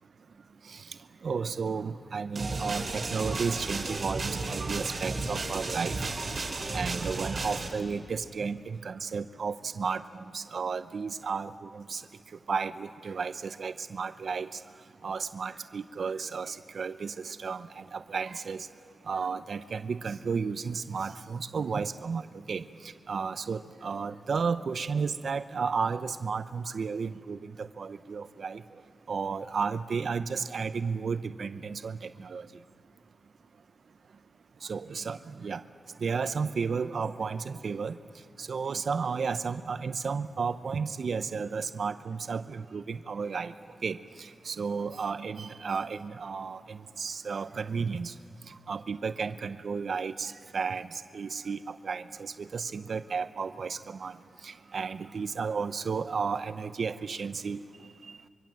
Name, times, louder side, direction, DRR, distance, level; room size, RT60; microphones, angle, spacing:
voice 1, 1.2-6.1 6.7-12.0 12.5-14.6 15.0-18.7 19.1-22.2 22.5-28.6 29.1-32.5 34.6-35.6 36.0-38.0 38.4-43.5 43.8-48.1 48.5-54.2 54.4-57.6, right 5 dB, 70° right, 12 dB, 0.7 m, -33 dB
sound 1, 2.4-7.7, right 3 dB, 50° right, 3.6 m, -33 dB
25.5 x 24.0 x 7.6 m, 2.1 s
wide cardioid pair, 90°, 0 cm